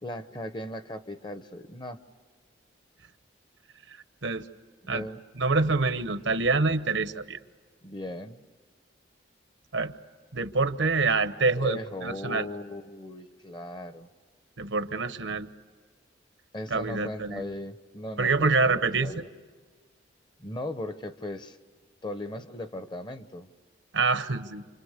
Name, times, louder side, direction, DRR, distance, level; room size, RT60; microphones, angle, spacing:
voice 1, 0.0-2.0 4.8-5.2 7.8-8.4 11.6-14.1 16.5-19.3 20.4-21.6 22.0-23.5, left 1 dB, 25° left, 10 dB, 0.9 m, -38 dB
voice 2, 5.4-7.4 9.7-9.9 10.3-12.5 14.6-15.5 16.7-17.5 18.2-19.1 23.9-24.6, right 3 dB, 80° right, 11 dB, 1.1 m, -26 dB
29.0 x 26.0 x 6.7 m, 1.5 s
head